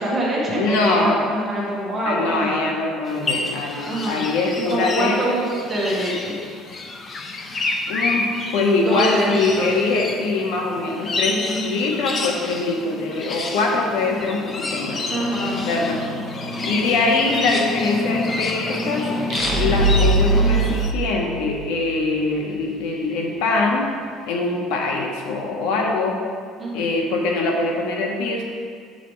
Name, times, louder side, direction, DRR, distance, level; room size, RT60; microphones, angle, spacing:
voice 1, 0.0-2.6 3.7-4.3 4.7-6.4 8.9-9.7 11.4-11.6 15.1-15.6 26.6-26.9, right 1 dB, 20° right, -6 dB, 1.7 m, -25 dB
voice 2, 0.5-1.1 2.0-5.3 7.9-15.0 15.7-16.0 16.6-19.1 19.5-23.9 24.3-26.2 26.7-28.4, left 3 dB, 80° left, 0 dB, 1.1 m, -23 dB
sound 1, 3.1-20.9, left 2 dB, 25° left, 0.5 m, -28 dB
sound 2, 19.3-21.9, right 2 dB, 35° right, 0.9 m, -20 dB
8.1 x 6.7 x 3.2 m, 2.1 s
cardioid pair, 175°, 0 cm